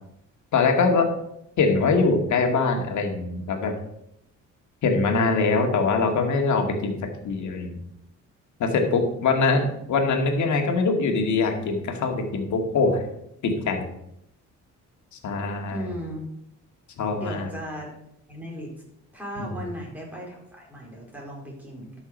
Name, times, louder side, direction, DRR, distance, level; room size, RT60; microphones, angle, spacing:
voice 1, 0.5-1.1 1.6-3.7 4.8-6.9 7.2-7.8 8.6-13.0 13.4-13.9 15.2-15.9 17.0-17.5 19.4-19.5, left 4 dB, 70° left, 3 dB, 2.1 m, -23 dB
voice 2, 15.7-16.2 17.1-17.9 18.3-18.7 19.1-21.9, equal, 5° right, -3 dB, 4.6 m, -37 dB
12.5 x 6.4 x 5.3 m, 0.79 s
cardioid pair, 90°, 30 cm